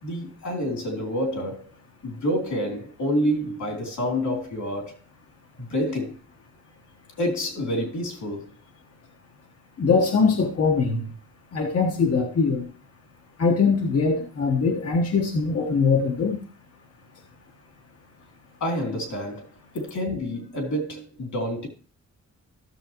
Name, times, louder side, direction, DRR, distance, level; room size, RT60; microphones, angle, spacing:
voice 1, 0.0-1.7 2.0-5.0 5.6-6.2 7.2-8.5 18.6-19.5 19.7-21.7, equal, 90° left, 3.1 m, -28 dB
voice 2, 9.8-11.1 11.5-12.6 13.4-16.4, left 4 dB, 55° left, 1.2 m, -22 dB
14.0 x 7.1 x 2.9 m
wide cardioid pair, 175°, 29 cm